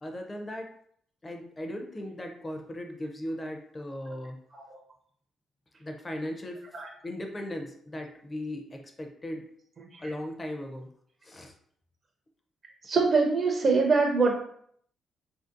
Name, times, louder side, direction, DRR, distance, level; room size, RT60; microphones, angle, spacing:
voice 1, 0.0-0.7 1.2-4.4 5.8-6.6 7.0-9.5 10.0-10.9 11.2-11.5, left 1 dB, 25° left, 3 dB, 0.5 m, -37 dB
voice 2, 12.8-14.4, right 4 dB, 45° right, 2 dB, 0.4 m, -23 dB
3.1 x 2.6 x 2.5 m, 0.65 s
cardioid pair, 90°, 0 cm